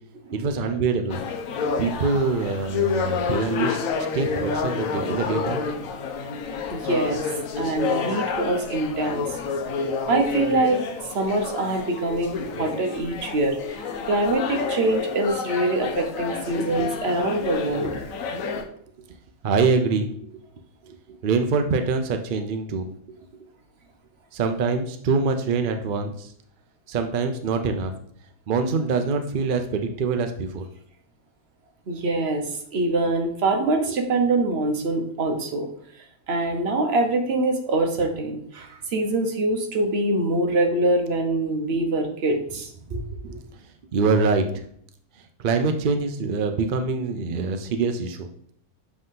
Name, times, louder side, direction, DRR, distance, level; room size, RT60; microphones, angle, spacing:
voice 1, 0.3-1.2 1.8-3.8 4.1-5.6 19.4-20.1 20.8-22.9 24.3-26.3 26.9-27.9 28.5-30.7 33.9-34.0 43.9-44.6 45.4-48.3, right 4 dB, 70° right, 6 dB, 0.5 m, -24 dB
sound 1, 1.1-18.6, left 5 dB, 70° left, 1.1 m, -29 dB
voice 2, 6.7-7.3 7.6-9.4 10.1-17.9 31.9-35.7 36.0-43.4, right 2 dB, 50° right, 4 dB, 1.0 m, -24 dB
7.6 x 3.6 x 3.8 m, 0.65 s
omnidirectional pair, 1.6 m